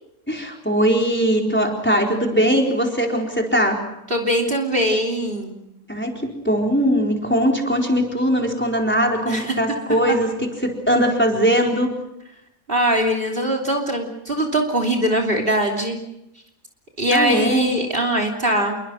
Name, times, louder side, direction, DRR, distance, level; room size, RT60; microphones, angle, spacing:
voice 1, 0.3-3.8 5.9-11.9 17.1-17.7, equal, 5° left, 1 dB, 4.3 m, -20 dB
voice 2, 4.1-5.6 9.3-9.5 10.1-10.2 12.7-16.0 17.0-18.8, equal, 40° right, 3 dB, 3.3 m, -21 dB
28.0 x 23.0 x 6.4 m, 0.88 s
omnidirectional pair, 1.5 m